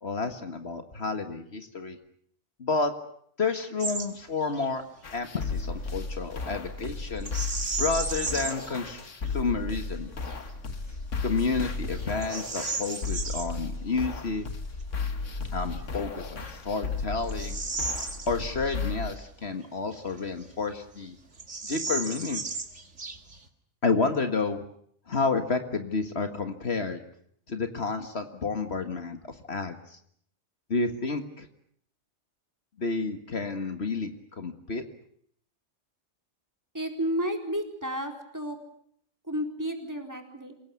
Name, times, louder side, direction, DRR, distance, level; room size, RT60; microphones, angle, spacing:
voice 1, 0.0-2.0 2.6-2.9 3.4-4.8 5.1-7.3 7.8-10.1 11.2-14.5 15.5-17.6 18.3-21.2 21.6-22.5 23.8-24.6 25.1-27.0 27.5-30.0 30.7-31.5 32.8-34.8, left 4 dB, 60° left, 7 dB, 2.0 m, -30 dB
Bird vocalization bird call bird song, 3.8-4.1 4.4-4.7 7.2-8.7 9.3-9.4 10.0-10.4 10.9-11.0 11.6-13.5 15.6-15.7 16.3-18.8 19.1-19.2 19.9-20.7 21.0-21.1 21.3-23.5, right 3 dB, 75° right, 2.5 m, -34 dB
sound 1, 5.0-19.1, left 4 dB, 90° left, 1.9 m, -34 dB
voice 2, 36.7-38.6 39.2-40.5, equal, 15° right, 3 dB, 4.1 m, -32 dB
27.5 x 17.5 x 9.5 m, 0.67 s
omnidirectional pair, 1.2 m